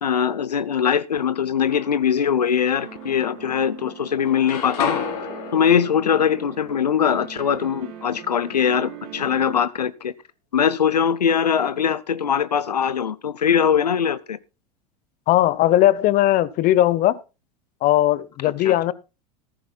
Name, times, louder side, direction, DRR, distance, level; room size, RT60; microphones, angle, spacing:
voice 1, 0.0-5.0 5.5-10.1 10.5-14.4 18.6-18.7, left 8 dB, 90° left, 0.6 m, -21 dB
sound 1, 1.4-2.2 2.8-3.8 4.1-8.0, left 6 dB, 70° left, 4.0 m, -33 dB
sound 2, 2.8-9.6, right 10 dB, 55° right, 2.9 m, -41 dB
voice 2, 15.3-17.2 17.8-18.9, left 14 dB, 45° left, 0.8 m, -18 dB
15.0 x 14.5 x 2.3 m
hypercardioid pair, 85°, 20 cm